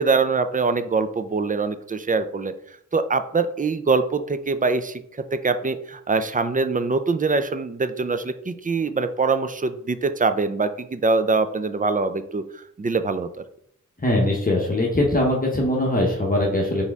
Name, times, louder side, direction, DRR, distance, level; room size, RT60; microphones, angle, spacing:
voice 1, 0.0-2.5 2.9-5.0 5.3-12.4 12.8-13.3, right 4 dB, 25° right, 10 dB, 0.4 m, -23 dB
voice 2, 14.0-16.8, left 1 dB, 25° left, -2 dB, 0.9 m, -21 dB
4.2 x 3.4 x 3.5 m, 0.67 s
wide cardioid pair, 70°, 32 cm